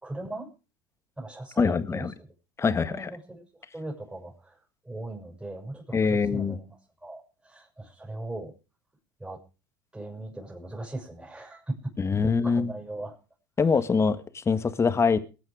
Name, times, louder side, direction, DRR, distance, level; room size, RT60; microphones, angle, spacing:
voice 1, 0.0-0.5 1.2-2.1 2.6-3.4 3.7-4.5 4.8-6.7 7.0-8.5 9.2-9.4 9.9-11.9 12.2-13.1, right 2 dB, 10° right, 0 dB, 6.2 m, -38 dB
voice 2, 1.6-2.1 2.6-3.1 5.9-6.6 12.0-12.7 13.6-15.2, left 5 dB, 25° left, 12 dB, 1.7 m, -24 dB
21.5 x 9.0 x 5.0 m, 0.33 s
hypercardioid pair, 90°, 11 cm